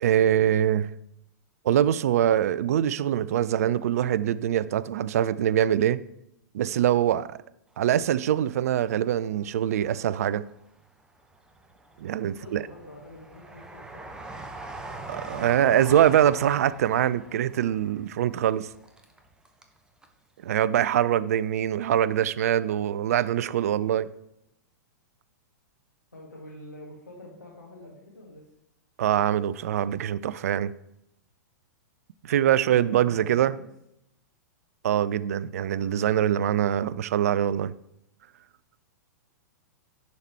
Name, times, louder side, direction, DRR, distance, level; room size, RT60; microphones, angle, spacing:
voice 1, 0.0-0.9 1.6-6.0 6.5-7.4 7.8-10.4 12.0-12.6 15.1-18.7 20.4-24.1 29.0-30.7 32.2-33.6 34.8-37.7, right 10 dB, 55° right, 0.3 m, -23 dB
Train, 7.8-9.1 9.5-10.5 11.0-19.8 20.0-20.1, right 2 dB, 5° right, 0.8 m, -43 dB
voice 2, 12.2-14.1 26.1-28.5 32.4-33.7, left 1 dB, 85° left, 1.7 m, -46 dB
10.5 x 4.2 x 4.5 m
figure-of-eight pair, 105°, 10 cm